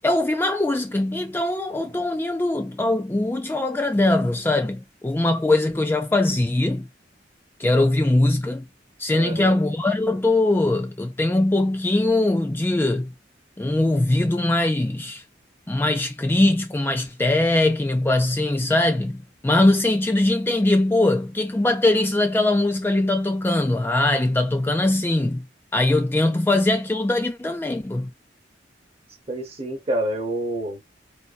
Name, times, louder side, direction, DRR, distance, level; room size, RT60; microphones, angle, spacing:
voice 1, 0.0-6.9 7.6-8.6 9.0-13.1 13.6-15.2 15.7-25.5 25.7-28.1, left 2 dB, 10° left, 0.4 m, -21 dB
voice 2, 9.1-9.6 29.3-30.8, right 1 dB, 35° right, 0.9 m, -28 dB
4.4 x 2.6 x 2.3 m
head